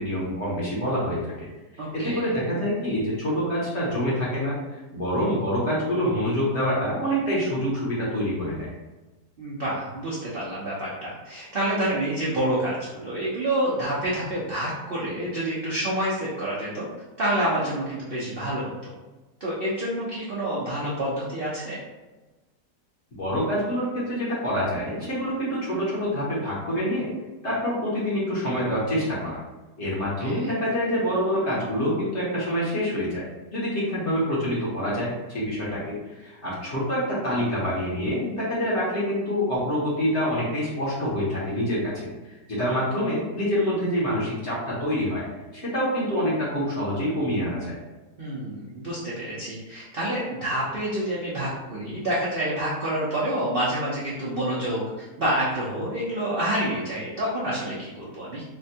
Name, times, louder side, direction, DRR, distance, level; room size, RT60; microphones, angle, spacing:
voice 1, 0.0-1.5 1.9-4.6 4.9-8.7 23.1-27.1 27.4-29.4 29.8-33.2 33.5-41.9 42.2-45.2 45.5-47.8, equal, 45° left, -7 dB, 1.1 m, -26 dB
voice 2, 1.8-2.4 9.4-16.9 17.2-18.9 19.4-21.8 30.2-30.5 48.2-58.4, right 1 dB, 55° right, -8 dB, 0.6 m, -28 dB
4.3 x 2.2 x 2.7 m, 1.2 s
omnidirectional pair, 1.8 m